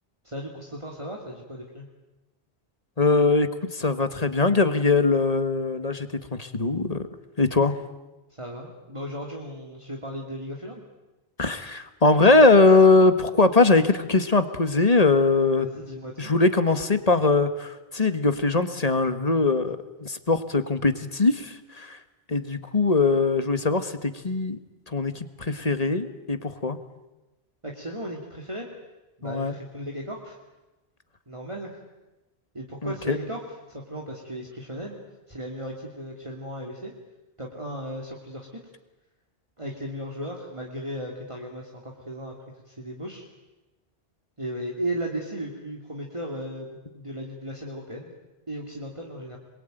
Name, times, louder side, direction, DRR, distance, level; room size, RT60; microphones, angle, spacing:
voice 1, 0.2-1.9 8.3-10.8 15.6-16.3 27.6-28.7 29.2-30.4 31.3-31.8 32.5-35.0 35.3-36.9 37.4-38.6 39.6-42.3 42.6-43.2 44.4-48.1 48.5-49.4, right 1 dB, 30° right, -1 dB, 2.9 m, -36 dB
voice 2, 3.0-7.1 7.4-7.7 11.4-15.7 16.2-22.0 22.3-24.6 24.9-26.8 29.2-29.5 32.8-33.2, left 3 dB, 35° left, 10 dB, 1.7 m, -21 dB
27.0 x 22.5 x 9.2 m, 1.1 s
omnidirectional pair, 1.1 m